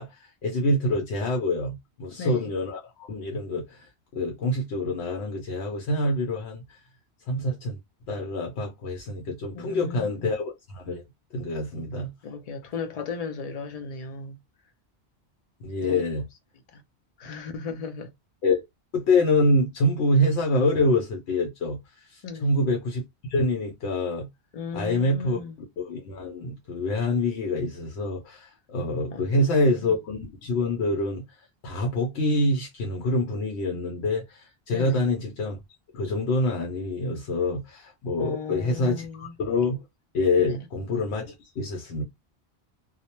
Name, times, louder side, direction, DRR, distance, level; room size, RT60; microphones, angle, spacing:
voice 1, 0.0-6.8 7.3-7.8 8.1-11.0 11.3-12.1 15.6-16.2 18.4-18.6 18.9-23.0 23.3-24.3 24.7-25.4 25.8-31.2 31.6-35.6 35.9-39.8 40.1-42.0, left 2 dB, 80° left, 0.9 m, -26 dB
voice 2, 2.2-2.5 9.5-10.1 12.2-14.4 15.9-16.0 16.7-16.8 17.2-18.1 22.2-22.6 24.5-25.6 29.1-29.6 29.8-30.0 34.7-35.1 38.2-39.3 40.4-40.6, left 4 dB, 55° left, 0.4 m, -36 dB
2.2 x 2.1 x 2.8 m
omnidirectional pair, 1.1 m